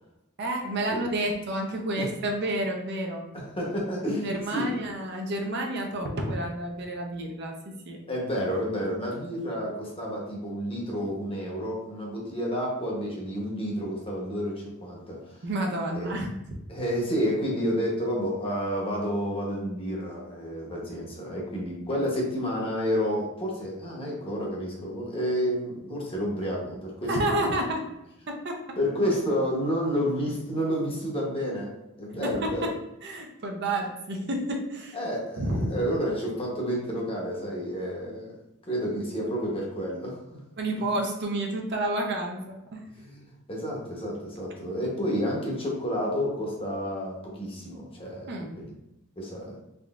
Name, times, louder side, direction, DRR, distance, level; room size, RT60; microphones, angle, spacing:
voice 1, 0.4-3.3 4.2-8.0 15.4-16.3 27.1-27.8 28.3-28.8 32.2-32.7 33.0-35.0 35.4-35.8 40.6-42.8 48.3-48.5, right 1 dB, 55° right, 2 dB, 0.6 m, -30 dB
voice 2, 3.3-4.8 8.1-15.4 15.9-16.1 16.7-27.6 28.8-32.7 34.9-38.4 38.7-40.4 43.0-48.7 49.2-49.6, equal, 25° left, -2 dB, 0.9 m, -30 dB
3.7 x 3.2 x 2.4 m, 0.88 s
head